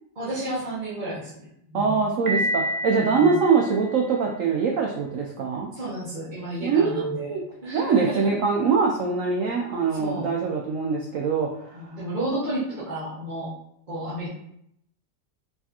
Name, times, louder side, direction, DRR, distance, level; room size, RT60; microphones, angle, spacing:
voice 1, 0.1-2.0 3.1-3.3 5.8-8.3 9.9-10.3 11.7-13.5 13.9-14.3, right 1 dB, 30° right, -10 dB, 1.0 m, -32 dB
voice 2, 1.7-5.7 6.6-7.4 7.7-11.9, right 5 dB, 90° right, 0 dB, 0.7 m, -23 dB
Piano, 2.3-4.2, right 1 dB, 55° right, 0.4 m, -29 dB
4.6 x 3.3 x 2.8 m, 0.74 s
omnidirectional pair, 2.0 m